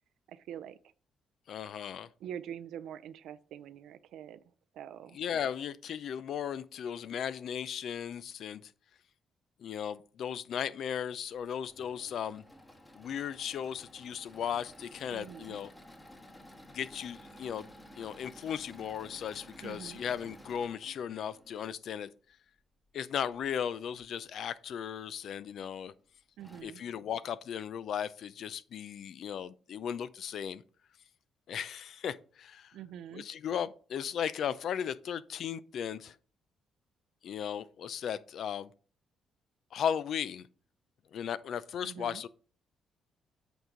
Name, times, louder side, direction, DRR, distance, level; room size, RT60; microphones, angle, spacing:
voice 1, 0.3-0.8 2.2-4.4 4.7-5.2 15.1-15.6 19.6-20.0 26.4-26.8 32.7-33.3 41.8-42.2, right 9 dB, 80° right, 0.5 m, -45 dB
voice 2, 1.5-2.1 5.1-8.7 9.6-12.4 12.9-15.7 16.7-17.7 18.0-22.1 22.9-25.9 26.6-30.6 31.5-32.7 33.1-36.2 37.2-38.7 39.7-40.5 41.1-42.3, left 8 dB, 65° left, 0.4 m, -36 dB
Engine / Mechanisms, 11.6-21.7 23.3-24.1 24.7-24.8 25.1-25.2 26.0-26.1 26.4-26.6, equal, 15° left, 1.4 m, -54 dB
8.0 x 4.6 x 3.8 m
cardioid pair, 90°, 0 cm